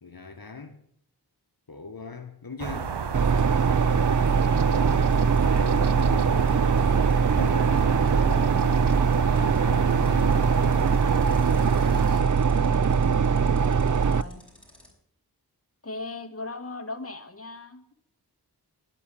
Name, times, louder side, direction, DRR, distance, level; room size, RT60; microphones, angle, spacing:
voice 1, 0.0-0.8 1.7-3.2 5.2-6.9 7.3-11.9, left 4 dB, 60° left, 1.5 m, -41 dB
sound 1, 2.6-12.2, right 6 dB, 90° right, 0.8 m, -32 dB
sound 2, 3.1-14.2, right 5 dB, 50° right, 0.5 m, -22 dB
sound 3, 4.9-14.9, left 1 dB, 5° left, 5.8 m, -53 dB
voice 2, 14.0-14.4 15.8-18.0, left 3 dB, 35° left, 1.8 m, -39 dB
11.5 x 9.4 x 9.1 m
wide cardioid pair, 45°, 40 cm